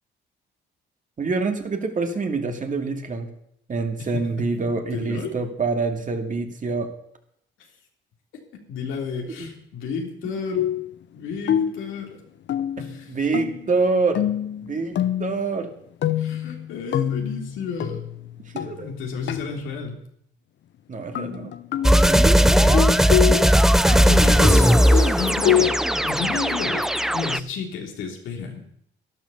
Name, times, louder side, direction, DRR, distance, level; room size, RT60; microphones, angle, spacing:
voice 1, 1.2-3.3 3.7-6.9 13.1-14.2 14.6-15.7 18.5-18.9 20.9-21.5 22.1-22.4, right 4 dB, 40° right, 5 dB, 2.4 m, -26 dB
voice 2, 4.0-4.5 4.9-5.3 8.7-10.7 11.1-12.2 12.8-13.1 16.2-18.0 18.5-20.0 22.4-23.1 23.4-25.8 26.0-28.6, left 5 dB, 85° left, 1 dB, 3.2 m, -32 dB
sound 1, 10.5-10.9 11.5-11.9 12.5-13.0 13.3-13.7 14.2-15.4 16.0-18.9 19.3-19.5 21.2-23.6 23.9-25.7, left 11 dB, 65° left, 0.9 m, -25 dB
sound 2, 21.8-27.4, equal, ahead, 0.5 m, -17 dB
12.5 x 11.5 x 7.0 m, 0.71 s
cardioid pair, 90°, 20 cm